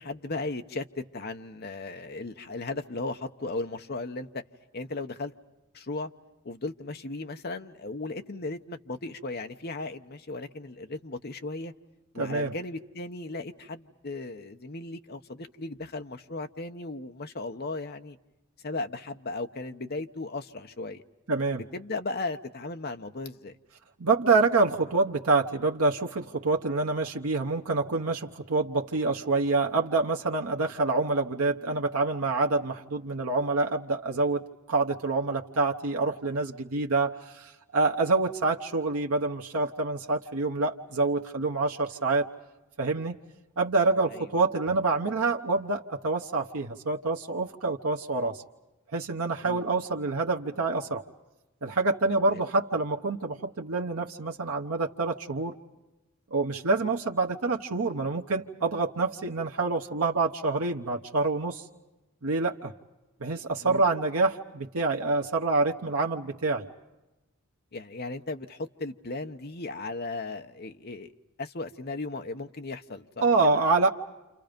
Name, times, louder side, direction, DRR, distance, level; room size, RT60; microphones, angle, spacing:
voice 1, 0.0-4.4 4.7-5.3 5.7-6.1 6.4-11.7 12.1-18.2 18.6-21.0 21.5-23.6 44.1-44.3 49.4-49.6 52.3-52.4 63.6-63.8 67.7-71.1 71.4-73.1 73.4-73.6, left 2 dB, 45° left, 6 dB, 0.9 m, -36 dB
voice 2, 12.2-12.5 21.3-21.6 24.0-34.4 34.7-42.2 42.8-43.2 43.6-48.4 48.9-51.0 51.6-55.5 56.3-61.6 62.2-62.7 63.2-66.7 73.2-73.9, right 3 dB, 75° right, 2 dB, 1.0 m, -27 dB
29.5 x 28.0 x 5.2 m, 1.0 s
head